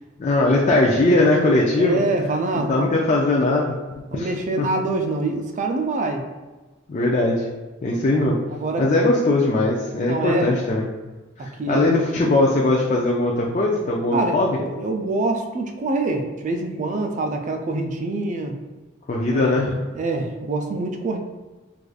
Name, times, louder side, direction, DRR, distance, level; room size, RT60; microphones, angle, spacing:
voice 1, 0.2-2.0 2.7-3.8 4.1-4.3 4.6-4.7 6.9-7.4 7.8-8.4 8.8-10.9 11.4-14.6 19.1-19.7, left 2 dB, 35° left, -3 dB, 0.4 m, -20 dB
voice 2, 1.8-3.0 4.1-6.3 8.5-8.9 10.1-10.6 11.4-11.9 14.1-18.6 19.3-19.5 19.9-21.2, right 2 dB, 40° right, 4 dB, 0.4 m, -25 dB
4.7 x 2.5 x 2.3 m, 1.2 s
head